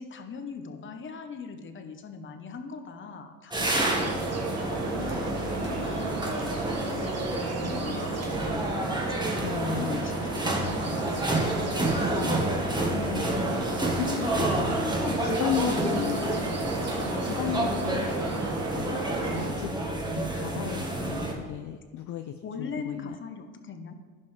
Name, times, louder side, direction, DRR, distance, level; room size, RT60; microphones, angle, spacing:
voice 1, 0.0-6.3 6.6-7.2 7.6-8.1 9.1-12.0 15.4-16.4 16.9-17.3 17.6-17.8 22.4-23.9, left 5 dB, 30° left, 7 dB, 1.0 m, -40 dB
sound 1, 3.5-21.3, right 1 dB, 10° right, 1.6 m, -29 dB
sound 2, 3.6-19.5, right 3 dB, 40° right, 1.7 m, -34 dB
voice 2, 9.4-10.1 12.1-12.5 12.8-16.2 17.2-18.0 18.5-19.7 20.1-23.2, left 10 dB, 50° left, 7 dB, 0.6 m, -35 dB
15.5 x 5.4 x 3.3 m, 1.5 s
supercardioid pair, 110°, 40 cm